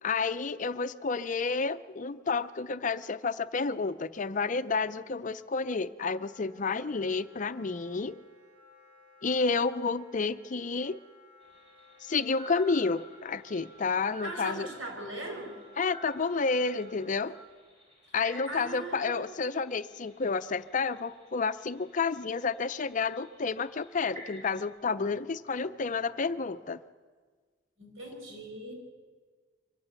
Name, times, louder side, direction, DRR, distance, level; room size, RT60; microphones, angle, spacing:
voice 1, 0.0-8.2 9.2-11.0 12.0-14.7 15.8-17.3 18.1-26.8, left 4 dB, 40° left, 13 dB, 0.5 m, -30 dB
Wind instrument woodwind instrument, 6.2-17.5, equal, 5° right, 5.8 m, -57 dB
sound 1, 11.4-24.6, equal, 30° right, 4.5 m, -52 dB
voice 2, 14.2-15.5 18.5-19.2 27.8-28.7, right 1 dB, 90° right, 1 dB, 5.6 m, -39 dB
24.0 x 14.5 x 8.1 m, 1.5 s
head